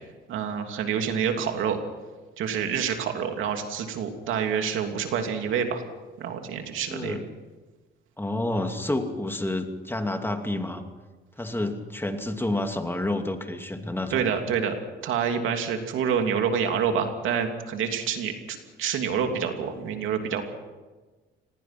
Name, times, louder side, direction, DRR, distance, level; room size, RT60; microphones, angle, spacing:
voice 1, 0.3-1.8 2.4-5.8 6.2-7.2 14.1-14.8 15.0-20.5, right 7 dB, 85° right, 5 dB, 2.9 m, -27 dB
voice 2, 6.9-7.2 8.2-10.8 11.4-14.4, left 1 dB, 10° left, 5 dB, 2.6 m, -29 dB
27.0 x 20.5 x 6.0 m, 1.3 s
cardioid pair, 90°, 20 cm